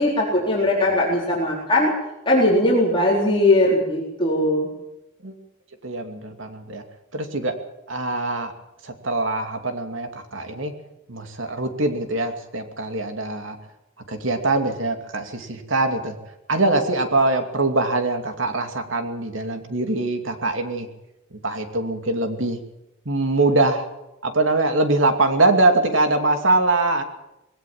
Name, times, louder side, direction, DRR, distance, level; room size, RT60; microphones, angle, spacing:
voice 1, 0.0-1.9 2.3-4.7, left 1 dB, 25° left, -4 dB, 4.1 m, -19 dB
voice 2, 5.8-6.8 7.1-7.5 7.9-8.5 8.8-10.7 11.1-13.6 14.1-16.2 16.5-20.9 21.4-22.6 23.0-23.9 24.2-27.0, right 2 dB, 85° right, 6 dB, 2.7 m, -23 dB
20.5 x 17.5 x 7.5 m, 0.91 s
head